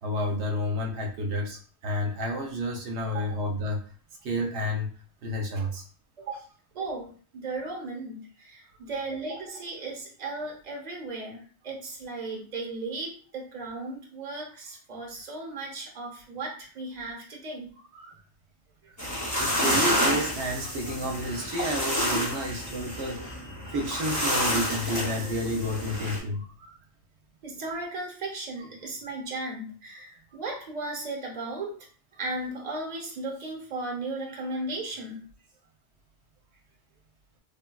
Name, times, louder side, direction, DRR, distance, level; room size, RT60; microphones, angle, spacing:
voice 1, 0.0-3.8 4.2-4.9 5.2-5.8 17.9-18.2 19.3-23.2 23.6-26.7, equal, 80° right, 2 dB, 0.9 m, -30 dB
voice 2, 6.7-17.7 18.8-18.9 27.4-31.7 32.1-35.3, right 2 dB, 40° right, -1 dB, 0.9 m, -36 dB
sound 1, 19.0-26.2, left 1 dB, 20° left, 0.6 m, -29 dB
3.4 x 2.2 x 2.2 m, 0.42 s
omnidirectional pair, 1.2 m